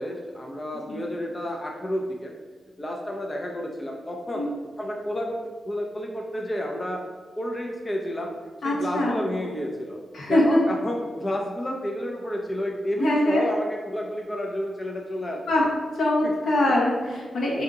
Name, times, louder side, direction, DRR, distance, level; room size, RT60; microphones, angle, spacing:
voice 1, 0.0-2.3 2.8-4.5 4.8-5.4 5.6-7.0 7.4-8.3 8.6-10.0 10.3-15.7, equal, 25° left, 0 dB, 0.5 m, -30 dB
voice 2, 8.6-9.2 10.1-10.6 13.0-13.5 15.5-15.6 15.9-17.6, left 1 dB, 80° left, -5 dB, 1.0 m, -23 dB
3.5 x 2.7 x 3.7 m, 1.4 s
cardioid pair, 75°, 0 cm